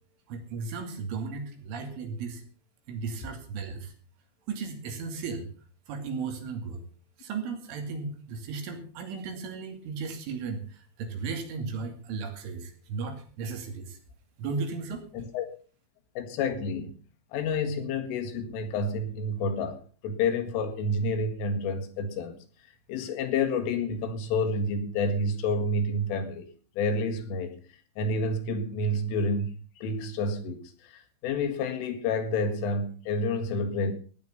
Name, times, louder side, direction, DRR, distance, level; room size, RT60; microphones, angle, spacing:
voice 1, 0.3-2.4 2.9-3.9 4.5-5.5 5.9-6.8 7.2-14.0 14.4-15.0, right 4 dB, 75° right, 5.0 m, -35 dB
voice 2, 15.1-15.5 16.2-17.0 17.3-22.4 22.9-26.5 26.8-27.6 28.0-33.9, left 2 dB, 80° left, 4.4 m, -29 dB
16.0 x 10.5 x 5.6 m
omnidirectional pair, 5.8 m